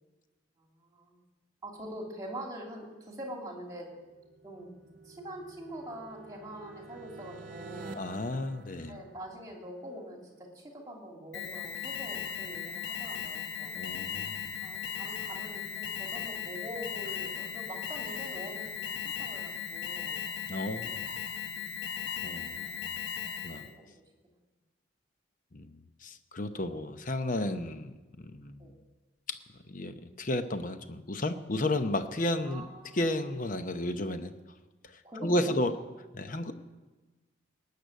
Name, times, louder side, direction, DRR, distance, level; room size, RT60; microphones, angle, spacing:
voice 1, 0.6-1.2 1.6-3.9 4.4-4.7 5.0-8.0 8.9-13.7 14.6-20.2 21.5-21.8 23.7-23.9 28.6-28.7 32.4-33.0 35.0-35.5 36.2-36.5, right 1 dB, 20° right, 0 dB, 2.6 m, -44 dB
sound 1, 3.8-9.7, right 3 dB, 45° right, 1.0 m, -49 dB
voice 2, 7.9-9.0 13.8-14.6 20.5-21.1 22.2-22.8 23.4-23.6 25.5-28.7 29.7-32.6 32.9-34.3 34.8-35.7 36.1-36.5, left 1 dB, 45° left, 9 dB, 0.8 m, -33 dB
Alarm, 11.3-23.7, left 7 dB, 70° left, 1.0 m, -37 dB
19.5 x 6.8 x 9.1 m, 1.2 s
head